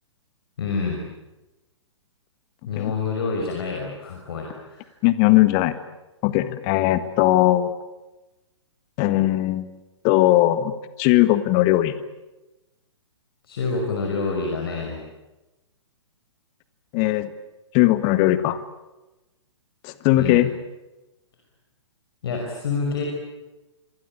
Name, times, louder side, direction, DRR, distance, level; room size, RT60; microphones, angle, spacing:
voice 1, 0.6-1.0 2.7-4.9 13.5-15.0 20.1-20.4 22.2-23.0, left 4 dB, 55° left, 1 dB, 5.6 m, -27 dB
voice 2, 5.0-5.7 6.2-7.7 9.0-9.7 10.0-11.9 16.9-17.3 17.7-18.6 19.8-20.5, left 15 dB, 30° left, 13 dB, 1.7 m, -19 dB
27.0 x 24.0 x 8.9 m, 1.0 s
figure-of-eight pair, 120°, 15 cm